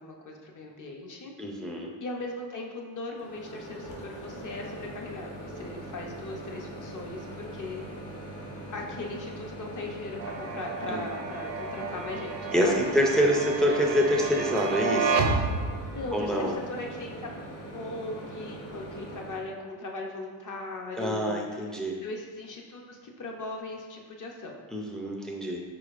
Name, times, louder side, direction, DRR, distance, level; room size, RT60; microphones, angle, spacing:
voice 1, 0.0-1.3 1.7-8.1 8.7-12.9 15.9-17.3 17.7-21.4 22.0-24.6, left 2 dB, 45° left, 0 dB, 0.6 m, -39 dB
voice 2, 1.4-1.9 10.9-11.0 12.5-15.3 16.1-16.6 21.0-22.0 24.7-25.6, equal, ahead, -1 dB, 0.3 m, -26 dB
Microwave oven, 3.1-19.4, right 1 dB, 60° left, 1.1 m, -41 dB
sound 1, 10.2-16.1, right 4 dB, 70° right, 0.6 m, -31 dB
4.9 x 4.1 x 2.4 m, 1.5 s
wide cardioid pair, 150°, 45 cm